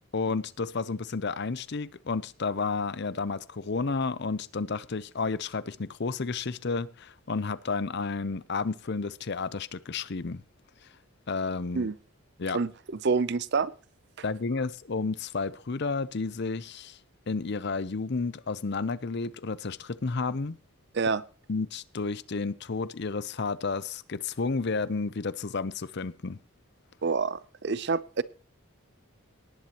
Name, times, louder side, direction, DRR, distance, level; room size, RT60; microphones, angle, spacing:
voice 1, 0.1-10.4 11.3-11.9 12.4-12.6 14.2-17.0 17.3-20.6 21.5-26.4, left 4 dB, 55° left, 0.6 m, -31 dB
voice 2, 13.0-13.7 20.9-21.2 27.0-28.2, right 4 dB, 55° right, 0.6 m, -27 dB
18.5 x 10.5 x 3.0 m
head